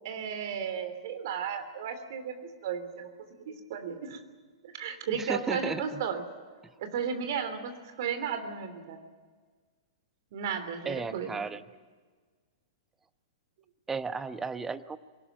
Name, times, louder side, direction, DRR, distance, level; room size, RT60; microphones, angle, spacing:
voice 1, 0.0-3.1 3.3-4.2 4.6-6.2 6.8-9.0 10.3-11.4, right 7 dB, 55° right, 8 dB, 3.2 m, -34 dB
voice 2, 5.1-6.0 6.6-6.7 10.8-11.6 13.9-15.0, right 4 dB, 15° right, 13 dB, 0.9 m, -34 dB
23.0 x 19.0 x 9.2 m, 1.5 s
figure-of-eight pair, 105°, 2 cm